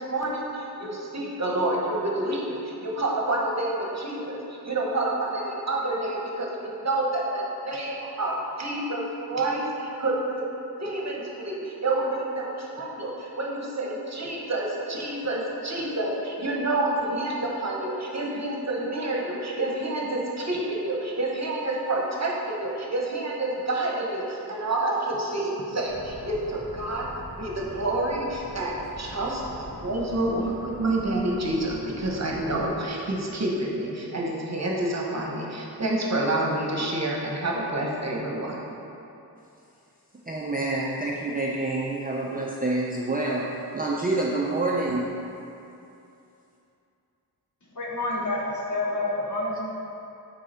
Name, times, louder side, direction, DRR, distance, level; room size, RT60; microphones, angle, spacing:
voice 1, 0.0-4.4 4.6-10.5 10.8-27.1 27.4-38.6, right 2 dB, 45° right, -2 dB, 1.1 m, -28 dB
sound 1, 25.9-32.7, equal, 20° left, 1.2 m, -43 dB
voice 2, 40.3-43.4 43.7-45.1, right 2 dB, 25° right, -3 dB, 0.5 m, -27 dB
voice 3, 47.7-49.6, left 2 dB, 50° left, -3 dB, 1.2 m, -28 dB
8.3 x 4.6 x 4.4 m, 2.8 s
wide cardioid pair, 115°, 39 cm